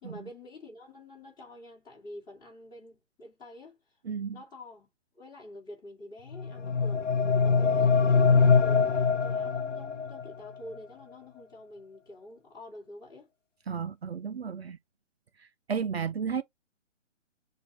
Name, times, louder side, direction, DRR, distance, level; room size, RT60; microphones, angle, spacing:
voice 1, 0.0-3.8 4.3-4.9 5.1-7.1 7.4-13.3, left 1 dB, 10° left, 2.2 m, -47 dB
voice 2, 4.0-4.4 13.7-14.8 15.4-16.4, right 6 dB, 55° right, 0.5 m, -33 dB
sound 1, 6.3-10.3, left 5 dB, 75° left, 0.7 m, -23 dB
6.8 x 2.5 x 3.0 m
figure-of-eight pair, 135°, 37 cm